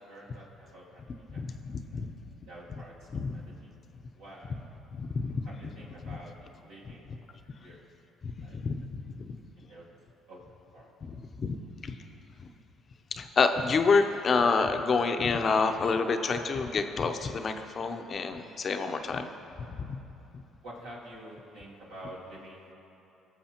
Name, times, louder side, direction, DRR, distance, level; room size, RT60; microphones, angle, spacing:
voice 1, 0.1-2.1 2.5-3.7 4.1-4.5 5.4-6.4 6.6-7.1 7.6-7.8 8.4-8.6 9.6-9.9 10.3-10.4 10.7-10.9 20.6-22.7, right 1 dB, 85° right, -7 dB, 2.5 m, -48 dB
voice 2, 1.3-2.1 3.1-3.4 4.9-5.4 6.1-6.2 8.2-9.4 11.4-11.6 11.8-12.0 12.4-12.5 13.1-19.3 19.6-20.0 20.3-20.4, left 4 dB, 45° left, 7 dB, 0.7 m, -28 dB
20.5 x 7.1 x 3.0 m, 3.0 s
supercardioid pair, 75°, 0 cm